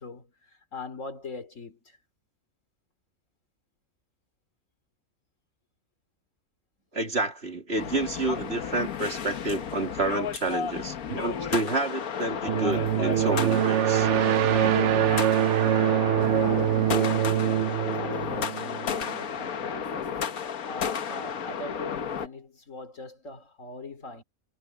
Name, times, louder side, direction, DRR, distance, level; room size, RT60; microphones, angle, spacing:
voice 1, 0.0-2.0 16.3-20.3 20.6-24.2, left 4 dB, 60° left, 3.1 m, -40 dB
voice 2, 6.9-14.1, right 2 dB, 45° right, 2.7 m, -29 dB
sound 1, 7.8-22.3, left 7 dB, 90° left, 1.6 m, -33 dB
sound 2, 12.5-19.1, right 11 dB, 65° right, 0.9 m, -24 dB
omnidirectional pair, 1.5 m